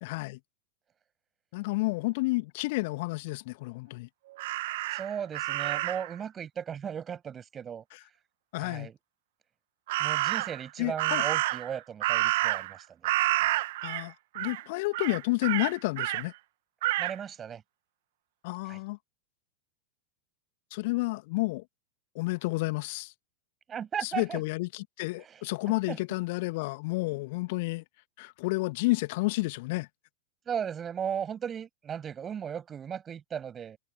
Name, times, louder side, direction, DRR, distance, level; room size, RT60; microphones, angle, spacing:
voice 1, 0.0-0.4 1.5-4.1 7.9-8.0 8.5-8.9 10.8-11.2 13.8-16.3 18.4-19.0 20.7-21.6 22.2-23.1 24.0-27.8 28.2-29.9, left 23 dB, 50° left, 1.8 m, -30 dB
Crow, 4.4-6.1 9.9-10.6 11.0-12.8 13.0-14.0 14.3-14.6 14.9-16.2 16.8-17.1, right 18 dB, 50° right, 1.4 m, -29 dB
voice 2, 4.9-7.8 8.6-9.0 10.0-13.0 13.4-13.5 17.0-17.6 18.7-18.8 23.7-24.4 25.2-25.4 25.9-26.0 30.5-33.8, right 8 dB, 25° right, 7.3 m, -36 dB
figure-of-eight pair, 90°, 0 cm